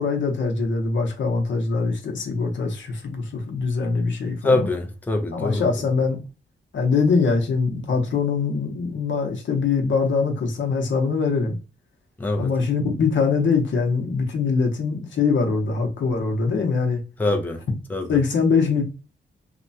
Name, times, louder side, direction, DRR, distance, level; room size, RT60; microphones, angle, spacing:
voice 1, 0.0-4.7 5.3-6.2 6.7-11.6 12.4-17.0 18.1-18.8, left 4 dB, 75° left, 0.8 m, -23 dB
voice 2, 4.4-5.6 12.2-12.5 17.2-17.6 17.9-18.2, left 2 dB, 10° left, 0.4 m, -23 dB
2.9 x 2.1 x 2.6 m
wide cardioid pair, 110°, 20 cm